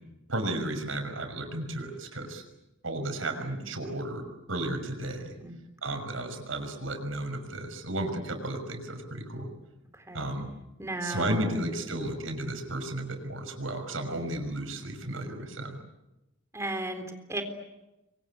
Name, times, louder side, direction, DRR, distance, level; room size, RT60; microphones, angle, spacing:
voice 1, 0.3-2.4 2.8-5.3 5.8-9.5 10.1-10.5 11.0-15.8, right 1 dB, 80° right, 5 dB, 6.0 m, -33 dB
voice 2, 9.9-10.3 10.8-11.6 16.5-17.4, right 1 dB, 15° right, 6 dB, 3.8 m, -35 dB
29.0 x 24.0 x 8.5 m, 0.97 s
head